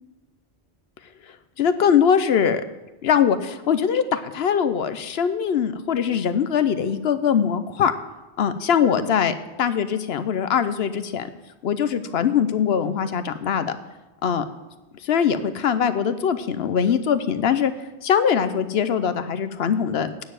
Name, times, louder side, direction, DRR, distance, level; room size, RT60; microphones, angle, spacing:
voice 1, 1.6-2.6 3.0-7.9 8.4-11.3 11.6-13.8 14.2-14.4 15.0-17.7 18.0-20.1, left 7 dB, 70° left, 12 dB, 0.9 m, -22 dB
9.3 x 6.7 x 8.9 m, 1.1 s
omnidirectional pair, 1.1 m